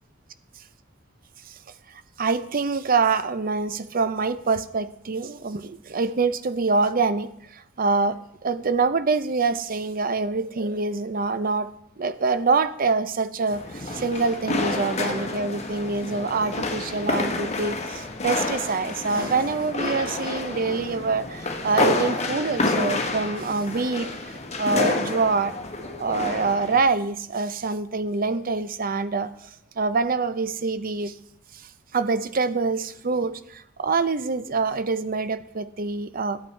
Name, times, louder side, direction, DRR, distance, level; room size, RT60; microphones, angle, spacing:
voice 1, 1.9-11.7 12.0-25.5 26.0-29.5 29.8-31.2 31.5-31.6 31.9-36.4, right 4 dB, 45° right, 0.6 m, -25 dB
sound 1, 13.5-26.8, left 2 dB, 35° left, 1.1 m, -29 dB
11.0 x 8.9 x 4.5 m
head